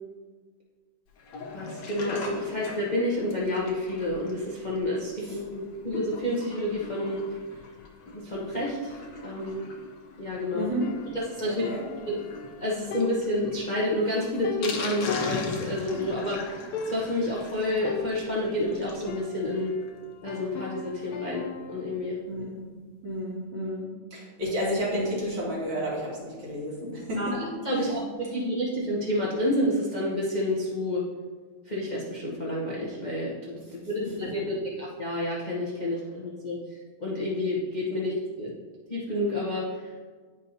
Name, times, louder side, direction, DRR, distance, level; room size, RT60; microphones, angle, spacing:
Sink (filling or washing), 1.2-19.2 19.6-19.7 19.8-19.9 20.3-20.4, left 3 dB, 65° left, 1.3 m, -40 dB
voice 1, 1.5-7.4 8.1-9.6 10.2-10.7 11.1-11.6 12.1-12.2 12.6-19.7 20.2-22.2 27.2-27.3 27.6-28.0 28.3-31.0 31.6-36.6 37.0-38.5 38.9-40.0, left 1 dB, 40° left, -6 dB, 0.6 m, -29 dB
voice 2, 10.5-10.9 11.4-11.9 22.3-22.5 23.0-28.0 34.2-34.3, equal, 70° right, -6 dB, 2.8 m, -31 dB
sound 1, 10.8-12.6 12.9-16.2 16.5-16.6 16.7-17.3 17.8-19.8 20.3-21.9, left 4 dB, 85° left, 0.8 m, -38 dB
9.3 x 5.4 x 2.7 m, 1.5 s
omnidirectional pair, 2.3 m